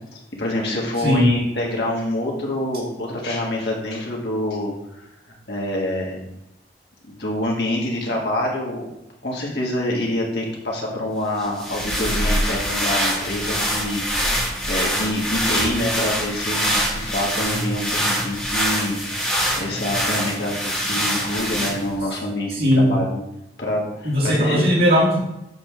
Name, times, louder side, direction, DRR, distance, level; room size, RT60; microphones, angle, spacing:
voice 1, 0.1-5.0 5.5-6.2 7.0-8.9 9.2-19.0 19.6-23.2 23.6-24.6, left 1 dB, 75° left, -2 dB, 1.9 m, -26 dB
sound 1, 11.4-22.0, equal, 5° left, 1.9 m, -24 dB
voice 2, 22.6-22.9 24.0-25.2, equal, 60° right, -8 dB, 2.6 m, -17 dB
7.8 x 3.5 x 6.1 m, 0.88 s
head